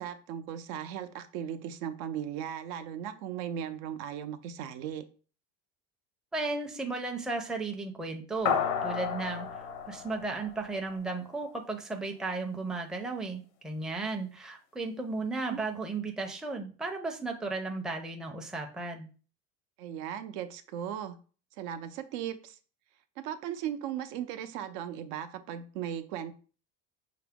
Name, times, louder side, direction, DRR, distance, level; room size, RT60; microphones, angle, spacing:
voice 1, 0.0-5.0 15.5-15.6 19.8-21.2 21.6-22.6 23.2-26.3, right 9 dB, 80° right, 9 dB, 0.7 m, -37 dB
voice 2, 6.3-19.1, right 3 dB, ahead, 2 dB, 0.4 m, -35 dB
sound 1, 8.5-11.2, left 7 dB, 85° left, 0.7 m, -32 dB
5.6 x 2.0 x 3.5 m, 0.37 s
cardioid pair, 130°, 32 cm